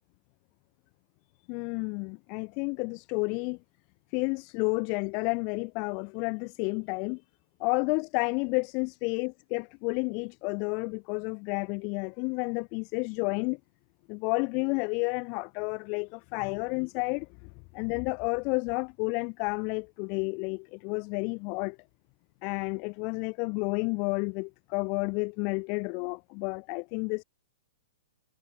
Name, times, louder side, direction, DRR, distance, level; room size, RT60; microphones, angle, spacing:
voice 1, 1.5-3.6 4.1-7.2 7.6-13.6 14.1-17.3 17.7-21.8 22.4-27.2, left 34 dB, 40° left, 0.6 m, -31 dB
figure-of-eight pair, 110°, 2 cm